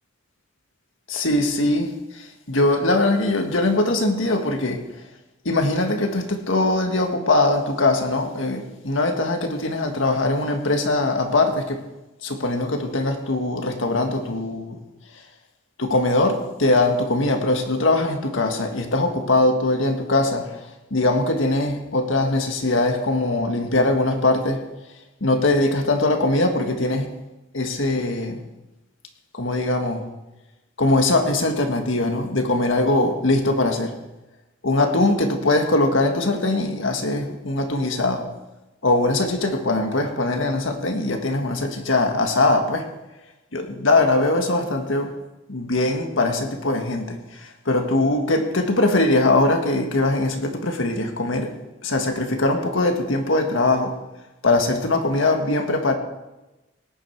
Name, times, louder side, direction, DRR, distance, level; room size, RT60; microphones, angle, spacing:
voice 1, 1.1-4.8 5.4-11.8 12.2-14.8 15.1-15.2 15.8-24.7 25.2-27.1 27.5-28.4 29.3-30.1 30.8-33.9 34.6-38.3 38.8-42.9 43.5-45.1 45.5-51.6 51.8-54.0 54.4-55.9, left 2 dB, 85° left, 4 dB, 1.8 m, -21 dB
18.0 x 10.0 x 4.7 m, 1.0 s
head